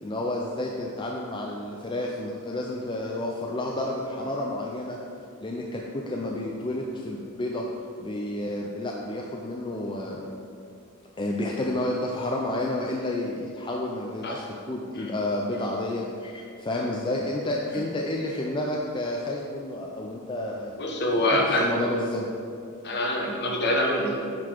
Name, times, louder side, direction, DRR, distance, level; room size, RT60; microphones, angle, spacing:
voice 1, 0.0-5.0 5.4-7.7 8.0-10.3 11.2-20.8 21.3-22.3, left 1 dB, 20° left, -1 dB, 0.5 m, -30 dB
voice 2, 20.8-21.7 22.8-24.2, left 1 dB, 50° left, 0 dB, 1.1 m, -25 dB
9.6 x 3.9 x 4.5 m, 2.5 s
head